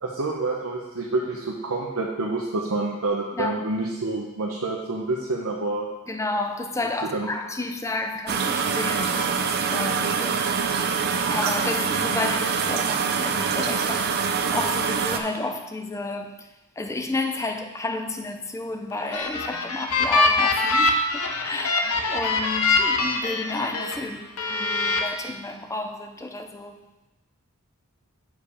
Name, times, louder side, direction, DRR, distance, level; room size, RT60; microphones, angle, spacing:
voice 1, 0.0-5.9 7.1-7.3, right 2 dB, 75° right, 0.8 m, -28 dB
voice 2, 3.3-3.6 6.1-11.0 11.3-26.8, left 2 dB, 15° left, 0.5 m, -32 dB
sound 1, 8.3-15.2, right 6 dB, 50° right, 0.5 m, -24 dB
sound 2, 18.9-24.0 24.4-25.0, left 3 dB, 90° left, 0.8 m, -23 dB
7.0 x 4.8 x 4.9 m
head